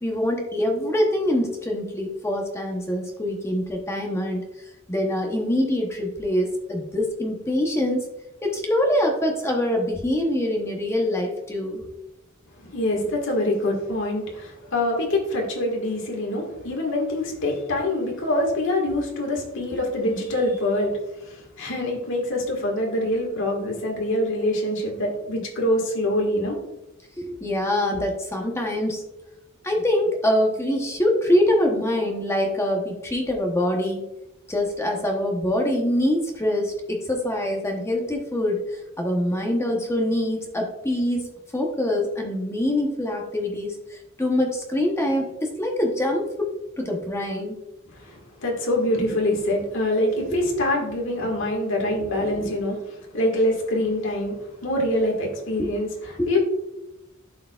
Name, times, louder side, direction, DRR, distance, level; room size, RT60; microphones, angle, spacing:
voice 1, 0.0-4.5 4.9-8.0 8.4-11.8 27.2-29.0 29.6-34.0 34.5-46.5 46.8-47.6 50.3-50.4 55.6-55.7 56.2-56.3, left 1 dB, 15° left, 1 dB, 0.9 m, -24 dB
voice 2, 12.6-26.6 47.9-54.3 54.6-56.4, left 1 dB, 65° left, 0 dB, 1.7 m, -25 dB
11.0 x 4.6 x 2.4 m, 0.92 s
head